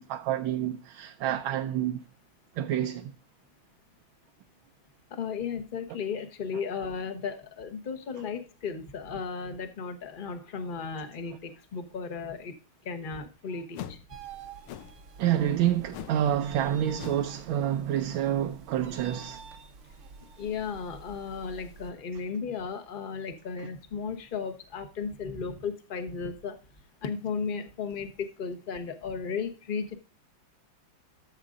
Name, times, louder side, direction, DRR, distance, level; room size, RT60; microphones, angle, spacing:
voice 1, 0.0-2.0 2.6-3.1 15.2-19.4, right 11 dB, 80° right, 1.4 m, -28 dB
voice 2, 5.1-12.5 12.8-14.0 20.4-26.6 27.0-30.0, left 5 dB, 35° left, 0.9 m, -35 dB
sound 1, 13.7-14.1 14.7-15.0 15.9-16.2 16.5-16.7 17.0-17.3, left 10 dB, 90° left, 1.5 m, -41 dB
sound 2, 14.1-21.9, right 5 dB, 55° right, 0.9 m, -49 dB
13.5 x 7.3 x 2.5 m
omnidirectional pair, 2.3 m